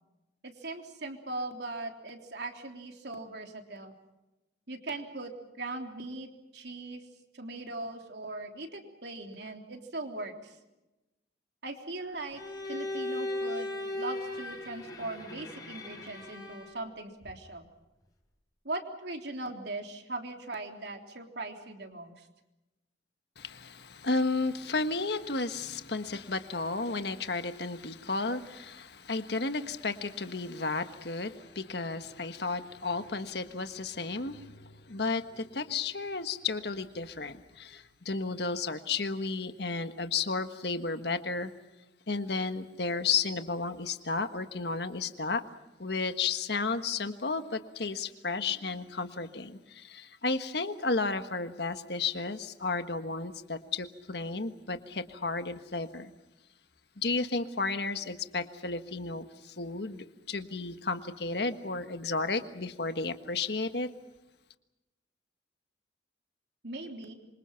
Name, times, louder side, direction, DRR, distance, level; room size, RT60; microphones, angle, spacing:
voice 1, 0.4-3.9 4.7-7.0 7.3-10.6 11.6-12.4 12.7-17.6 18.6-22.3 66.6-67.1, right 2 dB, 65° right, 3 dB, 3.5 m, -40 dB
Bowed string instrument, 12.3-16.9, left 1 dB, 20° left, 4.3 m, -37 dB
voice 2, 23.4-41.5 42.1-45.4 45.8-56.1 57.0-63.9, left 4 dB, 60° left, 8 dB, 1.5 m, -33 dB
27.0 x 25.0 x 5.9 m, 1.0 s
head